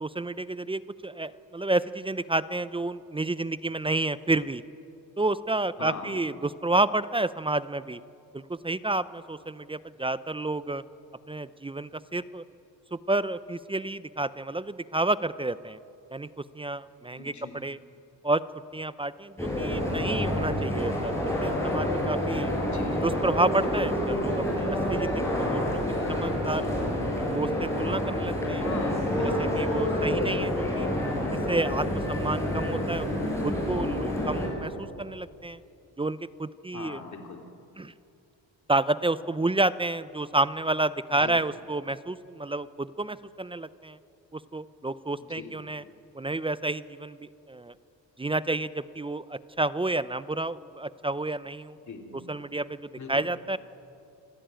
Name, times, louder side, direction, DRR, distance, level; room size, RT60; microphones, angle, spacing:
voice 1, 0.0-4.6 5.2-8.0 8.3-10.8 11.3-12.4 12.9-15.8 16.1-16.3 16.5-17.8 18.2-18.4 18.7-21.1 21.4-22.5 23.0-25.8 26.1-26.7 27.3-28.6 29.4-30.9 31.5-35.6 36.0-37.0 37.8-37.9 38.7-44.0 44.3-45.8 46.1-47.7 48.2-51.8 52.3-53.6, right 2 dB, 15° right, 16 dB, 0.4 m, -30 dB
voice 2, 5.8-6.2 17.1-17.5 22.6-23.1 28.6-29.5 29.9-30.3 36.7-37.4 41.1-41.4 45.3-45.5 51.9-52.2 53.0-53.3, left 5 dB, 40° left, 2 dB, 3.1 m, -40 dB
sound 1, 19.4-34.5, left 1 dB, 5° left, 7.4 m, -28 dB
26.0 x 15.0 x 9.0 m, 2.6 s
cardioid pair, 110°, 42 cm